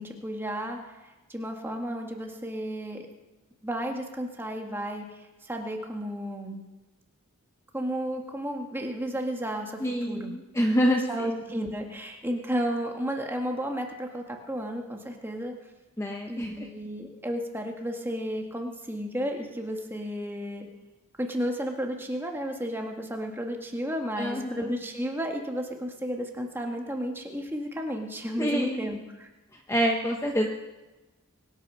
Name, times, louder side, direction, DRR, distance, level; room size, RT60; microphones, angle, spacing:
voice 1, 0.0-3.0 3.6-6.6 7.7-10.3 10.9-15.5 16.3-20.7 21.2-29.3, equal, 10° right, 2 dB, 1.7 m, -33 dB
voice 2, 9.8-11.4 16.0-16.7 24.2-24.7 28.4-28.9 29.7-30.5, equal, 10° left, 1 dB, 0.9 m, -27 dB
23.0 x 9.1 x 6.3 m, 1.1 s
head